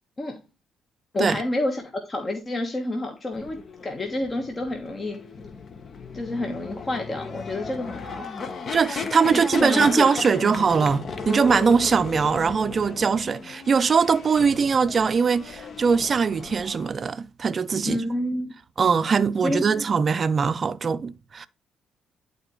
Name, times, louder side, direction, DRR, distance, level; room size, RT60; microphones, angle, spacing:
voice 1, 1.1-5.2 6.1-8.6 9.3-10.5 17.8-18.5 19.4-19.6, left 1 dB, 35° left, 1.3 m, -29 dB
sound 1, 3.3-16.9, left 5 dB, 50° left, 1.1 m, -35 dB
voice 2, 8.7-18.0 18.8-21.5, right 5 dB, 40° right, 0.5 m, -21 dB
11.0 x 4.1 x 3.1 m
cardioid pair, 90°, 0 cm